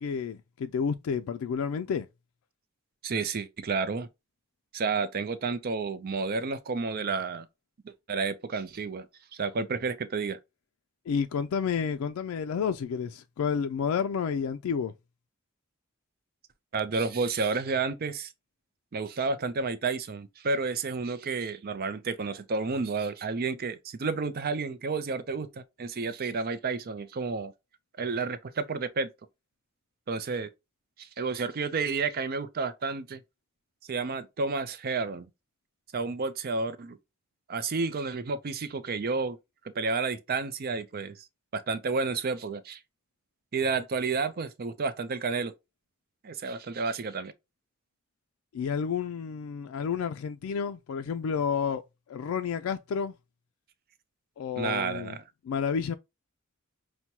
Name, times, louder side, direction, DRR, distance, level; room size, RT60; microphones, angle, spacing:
voice 1, 0.0-2.1 11.1-14.9 48.5-51.8 52.1-53.1 54.4-55.2 55.4-56.0, left 6 dB, 80° left, 0.3 m, -30 dB
voice 2, 3.0-4.1 4.7-7.5 8.1-9.1 9.3-10.4 16.7-18.3 18.9-27.5 28.0-29.1 30.1-30.5 31.0-33.2 33.9-35.3 35.9-37.0 37.5-39.4 39.8-41.3 41.5-42.8 43.5-45.5 46.2-47.3 54.6-55.2, right 4 dB, 45° right, 0.5 m, -31 dB
5.8 x 2.2 x 2.8 m
head